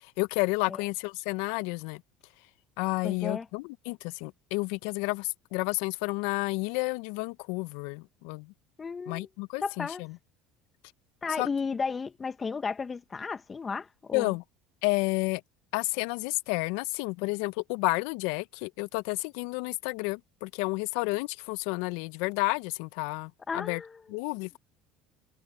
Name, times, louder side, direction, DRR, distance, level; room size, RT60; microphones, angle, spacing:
voice 1, 0.2-2.0 2.8-8.5 9.1-9.9 11.4-11.5 14.1-14.4 14.8-15.4 15.7-23.8 24.1-24.6, left 26 dB, 70° left, 1.0 m, -31 dB
voice 2, 3.0-3.5 8.8-9.3 9.6-10.0 11.2-14.3 23.5-24.0, left 5 dB, 25° left, 1.9 m, -34 dB
hypercardioid pair, 75°, 0 cm